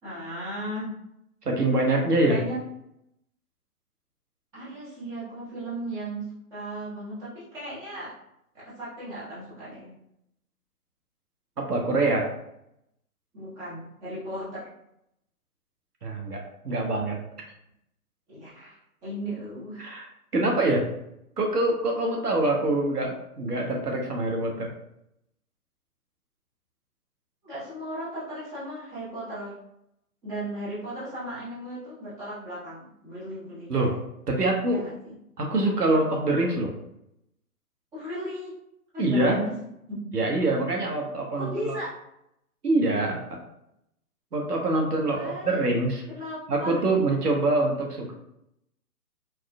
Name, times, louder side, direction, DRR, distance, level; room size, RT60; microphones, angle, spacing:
voice 1, 0.0-0.9 2.3-2.6 4.5-8.1 8.5-10.0 13.3-14.7 18.3-19.9 27.4-29.6 30.2-33.9 34.7-35.1 37.9-38.5 38.9-39.5 39.9-40.1 41.3-42.0 45.0-45.6 46.1-46.8, right 1 dB, 5° right, -11 dB, 0.8 m, -36 dB
voice 2, 1.4-2.4 11.6-12.3 16.0-17.2 19.8-20.1 20.3-20.9 21.4-24.7 33.7-34.0 34.3-34.8 35.4-36.7 39.0-39.4 40.1-41.7 42.6-43.2 44.3-46.0 46.5-48.1, right 2 dB, 85° right, 0 dB, 1.2 m, -25 dB
4.5 x 3.0 x 2.2 m, 0.79 s
figure-of-eight pair, 140°, 46 cm